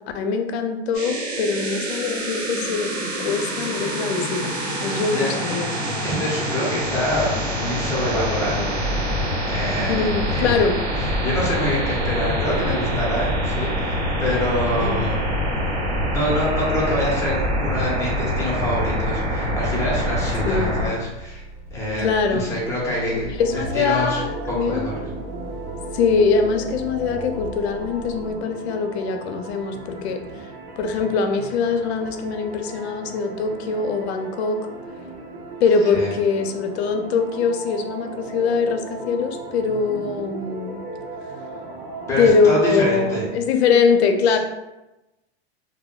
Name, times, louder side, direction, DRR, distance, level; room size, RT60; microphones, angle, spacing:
voice 1, 0.1-4.5 4.8-5.7 9.9-10.7 14.8-15.0 20.4-20.8 22.0-22.5 23.4-24.9 25.9-30.5 30.8-34.6 35.6-40.8 42.2-44.4, left 5 dB, 75° left, 6 dB, 0.5 m, -22 dB
sound 1, 0.9-20.9, equal, 85° right, 1.2 m, -25 dB
voice 2, 5.1-5.5 6.0-8.8 9.5-10.0 10.3-10.6 11.0-15.3 16.1-21.4 21.7-23.3 23.7-24.2 24.5-25.0 35.9-36.1 42.1-43.3, equal, 10° left, -5 dB, 0.7 m, -26 dB
sound 2, 8.6-28.3, right 2 dB, 45° left, 0.7 m, -38 dB
sound 3, 23.4-43.3, right 2 dB, 45° right, 1.0 m, -36 dB
2.2 x 2.1 x 3.6 m, 1.0 s
supercardioid pair, 145°, 33 cm